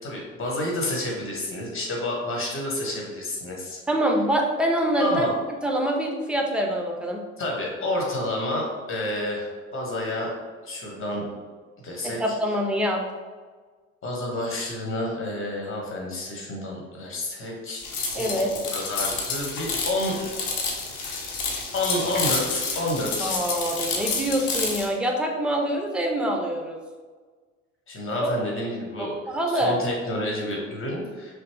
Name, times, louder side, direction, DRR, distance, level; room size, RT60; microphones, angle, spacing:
voice 1, 0.0-3.8 5.0-5.3 7.4-10.3 10.6-11.2 11.8-12.3 14.0-17.8 18.1-20.4 21.7-23.4 27.9-29.1 29.5-31.4, left 1 dB, 35° left, -1 dB, 1.4 m, -29 dB
voice 2, 3.9-5.3 5.6-7.2 12.0-13.0 18.2-18.5 23.2-26.8 29.0-29.8, right 1 dB, ahead, 1 dB, 0.7 m, -25 dB
sound 1, 17.8-24.9, left 4 dB, 50° left, 0.9 m, -29 dB
5.7 x 2.0 x 3.3 m, 1.4 s
figure-of-eight pair, 55°, 38 cm